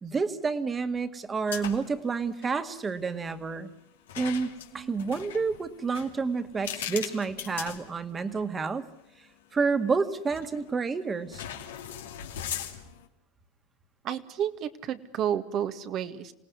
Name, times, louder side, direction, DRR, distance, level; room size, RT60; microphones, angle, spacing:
voice 1, 0.0-3.7 4.2-8.8 9.5-11.4, right 4 dB, 25° right, 10 dB, 2.1 m, -29 dB
sound 1, 1.5-2.0 2.3-2.5 4.1-8.5 9.0-9.1 10.3-10.7 11.3-13.1, left 10 dB, 85° left, 2.7 m, -39 dB
voice 2, 14.0-16.3, right 9 dB, 50° right, 9 dB, 2.0 m, -31 dB
28.0 x 18.5 x 9.6 m, 0.75 s
hypercardioid pair, 95°, 0 cm